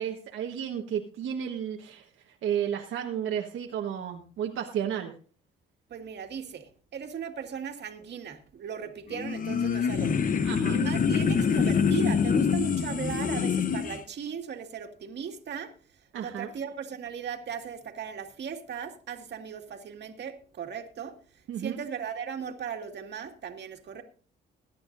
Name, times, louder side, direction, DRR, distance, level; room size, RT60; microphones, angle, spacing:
voice 1, 0.0-2.1 2.4-5.1 10.4-10.8 16.1-16.5 21.5-21.8, right 9 dB, 85° right, 0 dB, 1.5 m, -32 dB
voice 2, 5.9-10.1 10.7-15.7 16.2-21.2 21.6-24.0, right 7 dB, 60° right, 4 dB, 2.1 m, -37 dB
sound 1, 9.1-14.0, left 6 dB, 45° left, 1.0 m, -25 dB
21.5 x 10.5 x 2.7 m, 0.39 s
cardioid pair, 90°, 20 cm